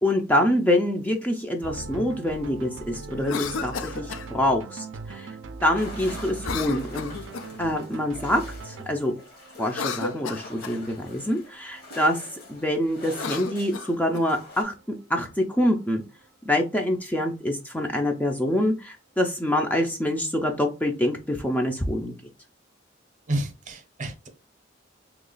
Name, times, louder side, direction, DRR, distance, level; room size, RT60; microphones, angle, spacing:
voice 1, 0.0-7.1 7.6-9.1 9.6-12.2 12.5-14.7 15.1-16.0 16.4-22.1, left 1 dB, 10° left, 0.4 m, -25 dB
sound 1, 1.6-14.3, right 4 dB, 70° right, 0.4 m, -41 dB
Cough, 3.2-4.3 6.4-7.6 9.5-10.8 13.0-14.3, left 5 dB, 80° left, 0.4 m, -33 dB
sound 2, 5.7-14.6, left 2 dB, 50° left, 1.1 m, -45 dB
voice 2, 23.3-24.3, right 1 dB, 40° right, 0.7 m, -30 dB
2.9 x 2.3 x 3.8 m
head